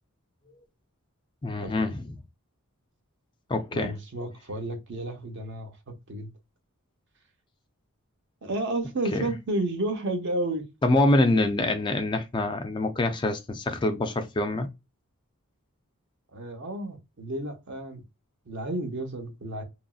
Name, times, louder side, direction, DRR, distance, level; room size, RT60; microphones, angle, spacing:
voice 1, 1.4-2.1 3.5-3.9 9.1-9.3 10.8-14.7, left 2 dB, 20° left, 0.3 m, -25 dB
voice 2, 3.7-6.3 8.4-10.7 16.3-18.0 18.5-19.6, right 1 dB, 55° right, 0.8 m, -32 dB
2.9 x 2.5 x 2.3 m
head